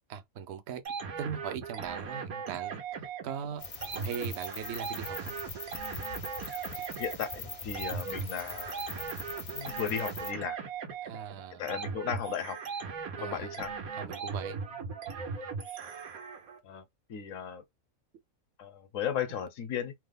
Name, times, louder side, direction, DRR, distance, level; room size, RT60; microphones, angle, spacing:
voice 1, 0.1-0.8 1.2-3.7 3.9-5.4 6.7-6.8 11.0-11.6 13.2-13.5 13.9-14.6, right 8 dB, 65° right, 0.7 m, -40 dB
sound 1, 0.9-16.6, right 5 dB, 90° right, 1.3 m, -39 dB
sound 2, 3.6-10.3, left 4 dB, 45° left, 0.4 m, -42 dB
voice 2, 7.0-8.8 9.5-10.6 11.6-12.6 13.2-13.7 16.6-16.8 17.1-17.6 18.6-19.9, left 8 dB, 70° left, 1.0 m, -35 dB
3.0 x 2.0 x 3.3 m
omnidirectional pair, 1.5 m